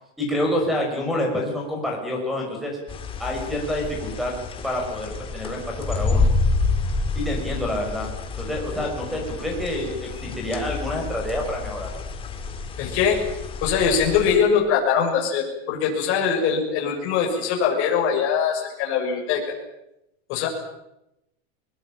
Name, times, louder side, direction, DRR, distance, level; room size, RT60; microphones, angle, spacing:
voice 1, 0.2-2.8 3.2-4.3 4.6-6.3 7.1-8.1 8.4-11.9, left 1 dB, ahead, 2 dB, 6.1 m, -27 dB
sound 1, 2.9-14.4, left 3 dB, 15° left, 2.2 m, -28 dB
voice 2, 12.8-13.2 13.6-19.4 20.3-20.5, left 7 dB, 40° left, -1 dB, 6.8 m, -22 dB
22.0 x 21.0 x 9.0 m, 0.87 s
supercardioid pair, 170°, 33 cm